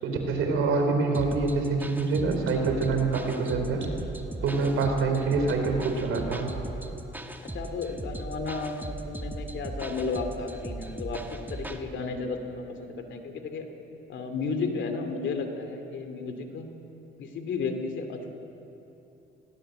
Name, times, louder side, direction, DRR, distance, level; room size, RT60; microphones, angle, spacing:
voice 1, 0.0-3.9 4.4-6.5, right 4 dB, 85° right, 3 dB, 3.6 m, -26 dB
sound 1, 1.1-11.8, right 1 dB, 10° right, 1.4 m, -38 dB
voice 2, 7.4-13.7 14.1-16.7 17.2-18.3, left 4 dB, 70° left, 6 dB, 2.5 m, -33 dB
19.5 x 17.0 x 7.7 m, 2.9 s
cardioid pair, 90°, 20 cm